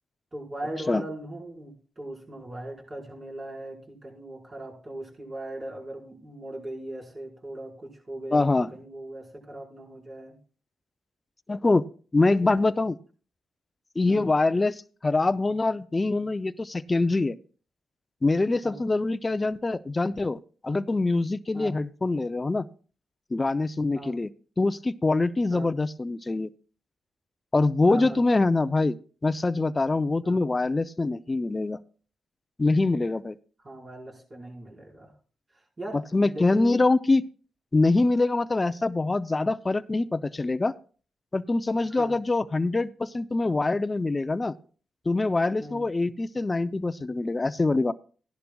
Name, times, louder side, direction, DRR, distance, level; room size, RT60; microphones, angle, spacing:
voice 1, 0.3-10.4 12.4-12.5 14.1-14.3 18.6-18.8 21.5-21.8 23.9-24.2 25.5-25.7 27.9-28.2 30.2-30.4 33.6-35.1 35.5-36.8 41.9-42.2 45.6-45.8, right 1 dB, 35° right, -2 dB, 4.8 m, -39 dB
voice 2, 8.3-8.7 11.5-11.8 12.1-12.9 14.0-17.4 18.2-22.7 23.3-24.3 24.6-26.5 27.5-29.0 29.2-31.8 32.6-33.4 36.1-37.2 37.7-40.7 41.3-44.5 45.1-47.9, left 3 dB, 30° left, 12 dB, 0.5 m, -24 dB
15.5 x 11.0 x 2.3 m, 0.39 s
supercardioid pair, 55°, 0 cm